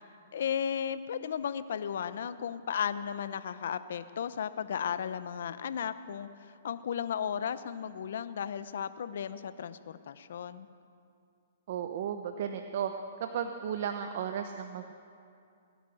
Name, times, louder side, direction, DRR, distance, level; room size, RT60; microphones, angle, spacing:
voice 1, 0.3-10.7, left 8 dB, 70° left, 14 dB, 0.8 m, -35 dB
voice 2, 11.7-12.9 13.2-14.9, right 8 dB, 55° right, 7 dB, 0.9 m, -34 dB
20.0 x 10.5 x 6.4 m, 2.4 s
hypercardioid pair, 140°, 0 cm